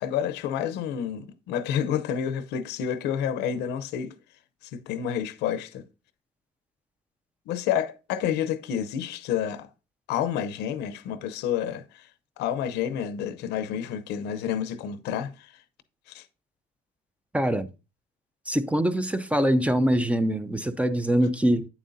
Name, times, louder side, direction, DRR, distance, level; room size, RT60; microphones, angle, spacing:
voice 1, 0.0-4.2 4.7-5.9 7.5-9.7 10.1-12.1 12.4-15.5 16.1-16.2, left 9 dB, 85° left, 0.7 m, -29 dB
voice 2, 17.3-17.7 18.5-21.7, right 1 dB, 10° right, 0.5 m, -23 dB
8.6 x 7.1 x 2.6 m
cardioid pair, 110°, 17 cm